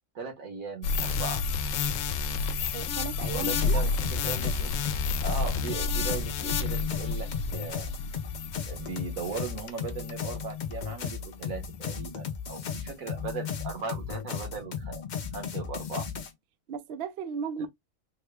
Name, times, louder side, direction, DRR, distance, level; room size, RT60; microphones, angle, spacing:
voice 1, 0.1-1.4 3.3-4.7 5.2-7.9 8.6-15.0 15.3-16.1 17.6-17.7, right 4 dB, 85° right, 1.5 m, -38 dB
sound 1, 0.8-9.5 10.0-10.1, left 4 dB, 75° left, 0.9 m, -30 dB
voice 2, 2.7-3.8 16.7-17.7, right 6 dB, 60° right, 0.7 m, -35 dB
sound 2, 3.2-16.3, left 7 dB, 60° left, 0.5 m, -35 dB
3.6 x 2.2 x 3.3 m
omnidirectional pair, 1.4 m